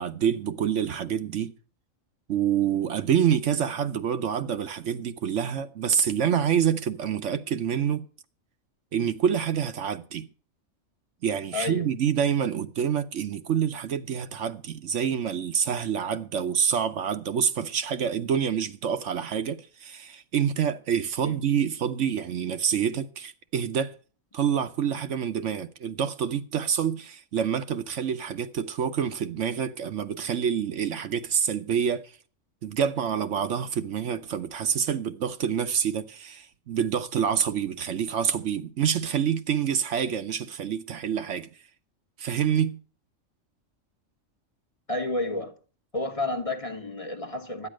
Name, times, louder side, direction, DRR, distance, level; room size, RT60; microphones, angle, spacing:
voice 1, 0.0-1.5 2.3-8.1 8.9-10.3 11.2-23.9 24.3-32.2 32.6-41.5 42.2-42.8, right 8 dB, 65° right, 1.1 m, -27 dB
voice 2, 11.5-11.9 21.2-21.4 44.9-45.6 45.9-47.7, left 2 dB, 30° left, 1.1 m, -31 dB
12.0 x 9.6 x 6.2 m
omnidirectional pair, 1.4 m